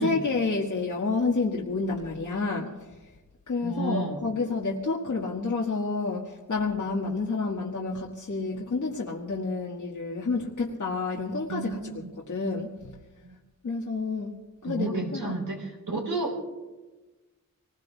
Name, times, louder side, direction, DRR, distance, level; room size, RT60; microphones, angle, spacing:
voice 1, 0.0-2.7 3.5-11.8 12.3-12.9 13.6-14.3 14.6-15.4, left 3 dB, 65° left, -3 dB, 1.7 m, -29 dB
voice 2, 3.6-4.2 11.5-12.1 13.2-13.3 14.6-16.4, right 3 dB, 80° right, -1 dB, 3.9 m, -32 dB
27.0 x 20.5 x 2.3 m, 1.2 s
wide cardioid pair, 90°, 33 cm